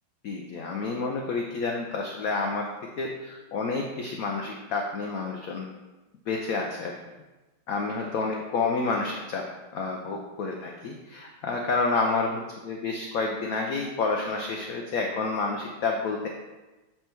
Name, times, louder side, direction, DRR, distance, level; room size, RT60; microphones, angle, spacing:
voice 1, 0.2-2.7 3.0-5.6 6.3-7.0 7.7-9.4 9.7-16.3, left 3 dB, 75° left, 1 dB, 0.8 m, -29 dB
7.5 x 3.3 x 4.4 m, 1.1 s
omnidirectional pair, 2.2 m